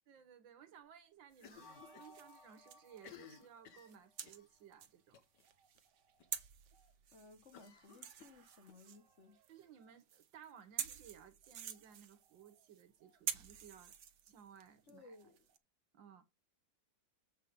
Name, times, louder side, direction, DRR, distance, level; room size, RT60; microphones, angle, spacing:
voice 1, 0.1-5.2 9.5-14.0 14.2-15.2 15.9-16.2, right 8 dB, 85° right, 1.9 m, -59 dB
sound 1, 1.3-3.5 3.8-15.6, right 9 dB, 65° right, 1.6 m, -49 dB
Cough, 1.4-2.2 2.4-2.5 2.9-4.5 5.1-5.4 5.8-5.9 6.2-6.3 7.5-8.8, left 8 dB, 65° left, 1.8 m, -58 dB
sound 2, 1.5-4.6, left 2 dB, 15° left, 2.1 m, -62 dB
voice 2, 7.1-9.4 14.9-15.5, left 2 dB, 40° left, 1.5 m, -59 dB
7.9 x 5.7 x 5.1 m
omnidirectional pair, 2.0 m